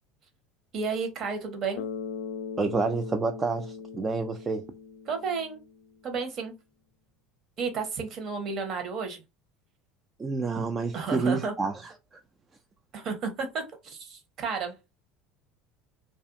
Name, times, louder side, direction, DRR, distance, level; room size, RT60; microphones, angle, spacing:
voice 1, 0.7-1.8 5.1-5.6 6.0-6.5 7.6-9.2 10.9-11.5 12.9-14.7, right 5 dB, 50° right, 0.9 m, -32 dB
Bass guitar, 1.8-6.0, left 6 dB, 75° left, 0.3 m, -39 dB
voice 2, 2.6-4.6 10.2-11.9, right 4 dB, 25° right, 0.3 m, -28 dB
2.5 x 2.4 x 2.5 m
hypercardioid pair, 75°, 0 cm